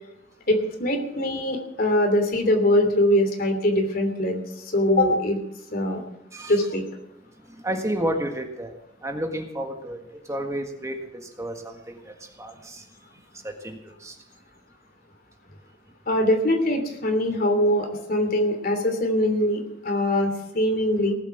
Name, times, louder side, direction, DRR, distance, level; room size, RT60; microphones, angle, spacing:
voice 1, 0.5-4.4 4.7-5.4 5.7-6.0 6.5-6.8 16.1-21.1, left 1 dB, 55° left, 4 dB, 3.0 m, -22 dB
voice 2, 7.5-8.7 9.0-12.8 13.4-14.2, right 1 dB, 15° right, 4 dB, 1.6 m, -31 dB
18.5 x 8.1 x 8.0 m, 0.84 s
head